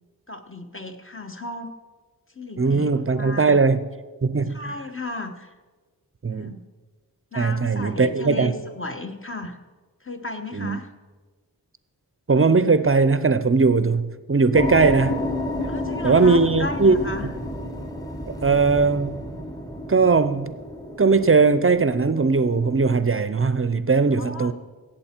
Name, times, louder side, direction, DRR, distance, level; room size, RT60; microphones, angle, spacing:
voice 1, 0.3-1.7 2.3-3.5 4.5-5.5 6.3-6.6 7.3-9.6 10.0-10.9 15.7-17.3 24.1-24.5, left 2 dB, 35° left, 1.0 m, -34 dB
voice 2, 2.6-3.8 4.2-4.7 6.2-6.6 7.3-8.5 10.5-10.8 12.3-15.2 16.0-17.0 18.3-19.2 19.9-20.6 21.0-24.5, right 4 dB, 35° right, 0.5 m, -19 dB
sound 1, 14.5-22.9, left 1 dB, 10° left, 1.2 m, -31 dB
16.5 x 7.5 x 4.4 m
wide cardioid pair, 50°, 38 cm